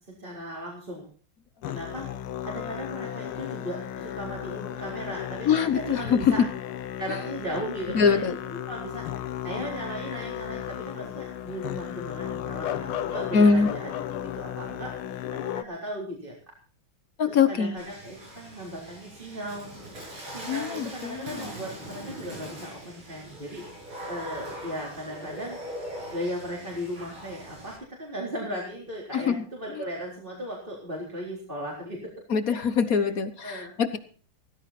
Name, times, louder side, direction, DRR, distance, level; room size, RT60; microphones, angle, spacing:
voice 1, 0.2-1.1 1.6-2.1 2.4-6.4 7.0-13.9 14.3-14.9 15.3-16.3 17.3-19.7 20.3-23.6 24.0-25.6 26.1-32.1 32.5-32.6 33.0-33.1 33.4-33.7, equal, 20° right, -3 dB, 4.2 m, -36 dB
Musical instrument, 1.6-15.6, left 11 dB, 80° left, 1.8 m, -35 dB
voice 2, 5.5-6.3 7.9-8.4 13.3-13.7 17.2-17.8 20.5-21.4 29.1-29.4 32.3-34.0, left 6 dB, 50° left, 11 dB, 1.2 m, -23 dB
Water / Splash splatter, 17.8-27.8, right 1 dB, 75° right, 7.8 m, -41 dB
17.0 x 15.5 x 4.2 m, 0.40 s
omnidirectional pair, 2.4 m